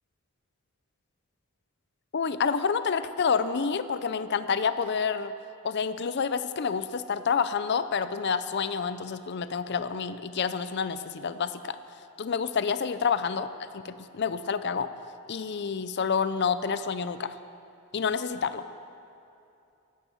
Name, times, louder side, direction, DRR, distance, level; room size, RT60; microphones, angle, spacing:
voice 1, 2.1-5.3 5.6-11.8 12.2-14.9 15.3-17.4 17.9-18.7, left 6 dB, 50° left, 12 dB, 0.5 m, -28 dB
16.0 x 12.0 x 7.0 m, 2.7 s
head